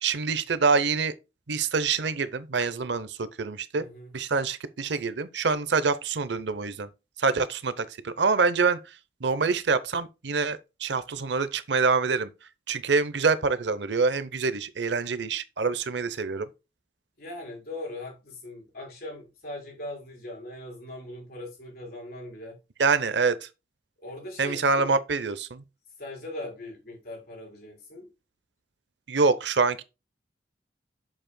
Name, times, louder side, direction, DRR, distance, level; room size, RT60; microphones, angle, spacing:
voice 1, 0.0-1.1 1.5-3.8 4.1-6.9 7.2-8.8 9.2-12.3 12.7-16.5 22.8-23.4 24.4-25.6 29.1-29.8, right 4 dB, 70° right, 0.7 m, -25 dB
voice 2, 3.7-4.1 17.2-22.6 24.0-25.0 26.0-28.1, left 1 dB, 55° left, 4.6 m, -40 dB
7.8 x 7.4 x 2.2 m
head